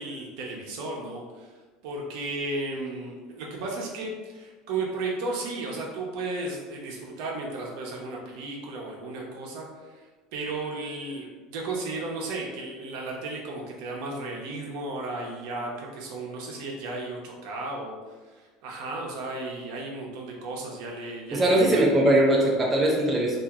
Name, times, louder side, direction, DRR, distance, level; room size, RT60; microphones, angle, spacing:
voice 1, 0.0-1.5 1.8-18.0 18.3-21.9, right 2 dB, 70° right, -1 dB, 0.7 m, -34 dB
voice 2, 21.3-23.4, right 1 dB, 15° right, -2 dB, 0.4 m, -21 dB
2.8 x 2.5 x 2.4 m, 1.3 s
supercardioid pair, 140°, 0 cm